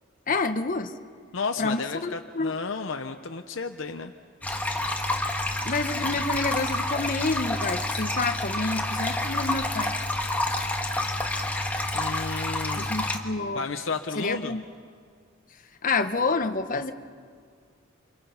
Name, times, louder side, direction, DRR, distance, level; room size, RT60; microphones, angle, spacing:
voice 1, 0.3-0.9 1.6-2.6 5.6-9.9 12.8-13.6 14.2-14.6 15.8-16.9, left 3 dB, 45° left, 8 dB, 1.1 m, -28 dB
voice 2, 1.3-4.1 11.9-12.9 13.5-14.5, left 4 dB, 80° left, 6 dB, 0.8 m, -32 dB
sound 1, 4.4-13.2, left 1 dB, 10° left, 1.7 m, -28 dB
28.5 x 26.5 x 5.7 m, 2.1 s
head